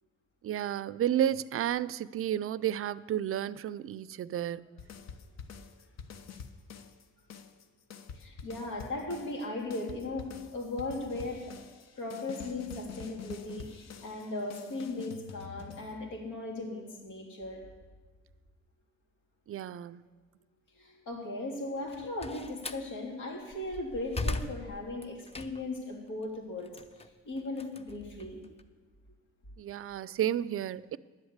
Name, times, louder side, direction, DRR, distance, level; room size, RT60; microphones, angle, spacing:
voice 1, 0.4-4.7 19.5-20.0 29.6-31.0, right 11 dB, 50° right, 0.4 m, -32 dB
sound 1, 4.8-7.0 7.3-16.3, left 6 dB, 60° left, 1.0 m, -47 dB
voice 2, 8.1-11.5 12.0-17.6 20.8-26.7 27.2-28.4, left 2 dB, 80° left, 3.3 m, -37 dB
Slam, 21.8-22.9 23.4-25.8 26.2-28.6, left 2 dB, 20° left, 0.7 m, -38 dB
10.5 x 8.0 x 8.1 m
cardioid pair, 90°, 30 cm